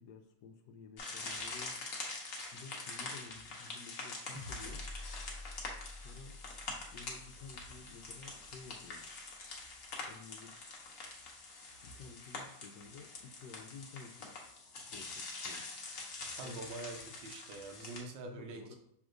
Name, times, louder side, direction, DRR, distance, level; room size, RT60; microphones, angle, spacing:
voice 1, 0.0-1.8 2.5-4.9 6.0-6.4 6.9-9.1 10.1-10.7 11.8-14.4 14.8-15.7 16.4-16.7 18.2-18.8, left 5 dB, 75° left, 5 dB, 1.1 m, -53 dB
sound 1, 1.0-18.0, left 3 dB, 55° left, 1.1 m, -45 dB
sound 2, 4.3-8.9, left 1 dB, 30° right, 0.7 m, -49 dB
voice 2, 16.4-18.8, right 3 dB, 85° right, 3 dB, 1.4 m, -45 dB
6.1 x 3.4 x 2.5 m, 0.69 s
omnidirectional pair, 1.9 m